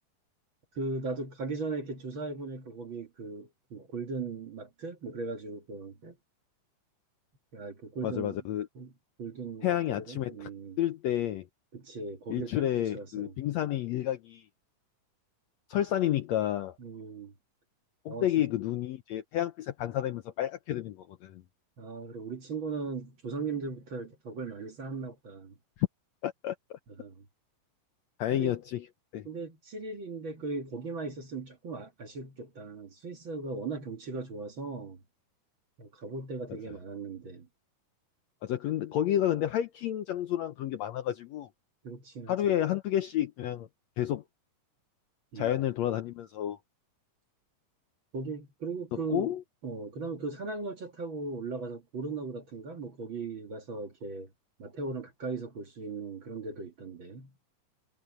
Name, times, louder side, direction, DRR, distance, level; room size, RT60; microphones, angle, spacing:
voice 1, 0.7-6.2 7.5-8.4 8.8-8.9 9.2-10.8 11.7-12.7 12.9-13.3 16.8-17.3 18.1-18.3 21.8-25.5 27.0-27.3 28.3-28.6 29.3-35.0 35.8-37.5 41.8-42.6 45.3-45.6 48.1-49.3 49.6-54.3 54.6-57.3, right 4 dB, 45° right, 2.0 m, -38 dB
voice 2, 8.0-8.7 9.6-10.5 10.8-11.5 12.3-14.4 15.7-16.8 18.1-21.4 25.8-25.9 26.2-26.6 28.2-28.9 29.1-29.3 38.4-41.5 42.3-43.7 44.0-44.2 45.4-46.6 48.9-49.4, left 12 dB, 75° left, 1.7 m, -30 dB
omnidirectional pair, 3.8 m